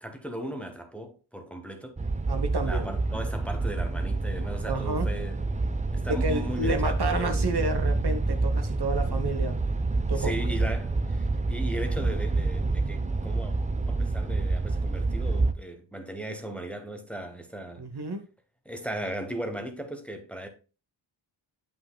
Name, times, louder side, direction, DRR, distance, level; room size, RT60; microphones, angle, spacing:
voice 1, 0.0-1.9 2.6-5.4 5.9-7.5 10.1-13.5 13.9-17.8 18.6-20.5, right 1 dB, 5° left, 1.0 m, -37 dB
sound 1, 2.0-15.5, right 3 dB, 15° right, 0.4 m, -27 dB
voice 2, 2.3-2.9 4.6-5.1 6.1-9.6 10.1-10.3 17.8-18.2, right 2 dB, 50° right, 1.0 m, -30 dB
7.9 x 5.6 x 2.2 m
wide cardioid pair, 75°, 49 cm